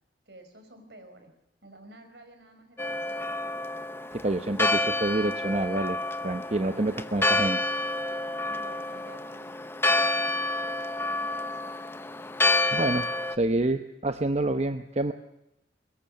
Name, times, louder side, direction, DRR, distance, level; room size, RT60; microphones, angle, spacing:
voice 1, 0.3-1.3 1.6-3.4 8.4-9.5 9.9-10.5 11.0-11.8, right 1 dB, 70° right, 7 dB, 5.1 m, -50 dB
Church bell, 2.8-13.4, left 2 dB, 15° left, 0.8 m, -29 dB
voice 2, 4.2-6.0 6.2-7.7 12.7-13.1 13.4-15.1, right 2 dB, 40° right, 8 dB, 0.9 m, -27 dB
23.5 x 21.5 x 6.6 m, 0.87 s
head